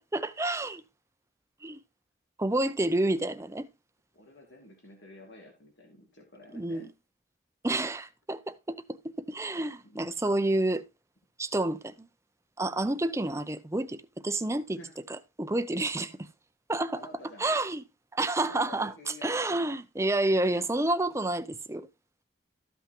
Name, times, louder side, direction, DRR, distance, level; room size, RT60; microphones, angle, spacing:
voice 1, 0.1-0.8 1.6-1.8 2.4-3.7 6.5-6.8 7.6-10.8 11.4-12.1 12.6-14.8 15.4-16.2 16.7-17.0 17.4-17.8 18.1-18.9 19.2-21.9, right 2 dB, 15° right, 0.6 m, -29 dB
voice 2, 2.8-3.1 4.1-6.9 9.8-10.1 14.8-15.0 17.0-17.5 18.4-19.7, left 1 dB, 80° left, 2.8 m, -50 dB
13.5 x 5.7 x 3.0 m
head